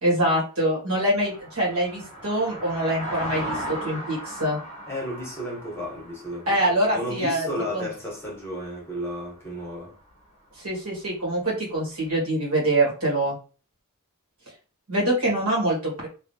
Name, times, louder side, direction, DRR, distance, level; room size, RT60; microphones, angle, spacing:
voice 1, 0.0-4.6 6.5-7.5 7.7-7.8 10.6-13.3 14.9-16.1, right 1 dB, 75° right, 1.6 m, -24 dB
sound 1, 1.2-8.5 9.1-9.3, equal, 30° left, 0.8 m, -37 dB
voice 2, 4.9-10.0, left 1 dB, 10° left, 1.3 m, -33 dB
3.1 x 2.7 x 2.7 m
head